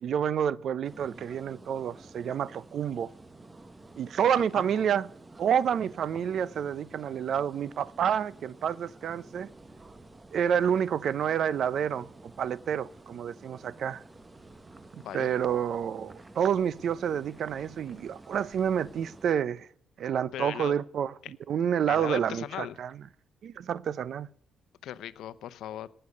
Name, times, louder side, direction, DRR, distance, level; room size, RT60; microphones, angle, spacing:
voice 1, 0.0-3.1 4.0-5.1 5.4-9.5 10.3-12.1 12.4-14.0 14.9-19.7 20.0-21.1 21.5-22.9 23.4-24.3, right 8 dB, 65° right, 0.6 m, -29 dB
sound 1, 0.8-19.3, right 2 dB, 20° right, 1.1 m, -51 dB
voice 2, 4.4-4.8 15.0-15.3 20.3-20.7 21.2-21.3 21.9-22.8 24.8-25.9, left 11 dB, 80° left, 0.7 m, -38 dB
18.0 x 6.7 x 6.6 m
cardioid pair, 90°, 0 cm